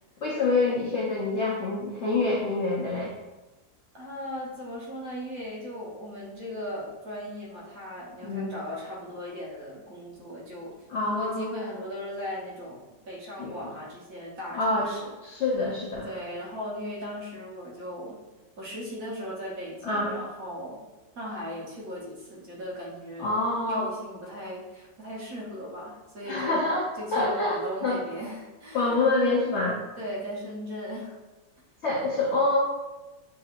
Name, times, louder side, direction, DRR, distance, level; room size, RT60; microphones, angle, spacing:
voice 1, 0.2-3.1 8.2-8.5 10.9-11.4 13.4-13.5 14.5-14.9 15.2-16.1 19.8-20.1 23.2-23.9 26.2-27.6 27.8-28.0 28.7-29.8 31.8-32.6, left 2 dB, 60° left, -6 dB, 0.7 m, -26 dB
voice 2, 3.9-10.7 11.0-15.4 16.0-18.2 18.6-20.8 21.2-23.3 23.7-26.6 27.0-29.1 30.0-31.2, equal, 55° right, -5 dB, 1.3 m, -37 dB
6.3 x 2.7 x 2.4 m, 1.1 s
omnidirectional pair, 2.0 m